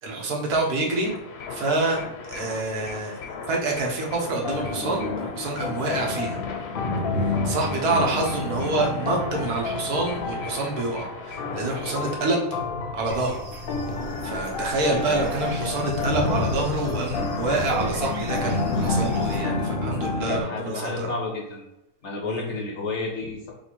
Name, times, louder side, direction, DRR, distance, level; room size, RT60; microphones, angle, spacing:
voice 1, 0.0-1.1 1.5-3.1 3.5-6.4 7.2-12.6 12.9-13.4 14.2-21.1 22.2-22.4, right 2 dB, 80° right, 0 dB, 1.4 m, -27 dB
sound 1, 0.9-12.2, left 5 dB, 85° left, 1.3 m, -38 dB
sound 2, 3.3-3.8 4.4-20.4, left 3 dB, 65° left, 0.5 m, -29 dB
sound 3, 13.0-19.4, right 3 dB, 60° right, 1.0 m, -41 dB
voice 2, 14.9-15.3 20.2-21.7 22.0-23.5, left 3 dB, 50° left, -2 dB, 1.2 m, -31 dB
3.3 x 3.1 x 4.4 m, 0.92 s
omnidirectional pair, 1.6 m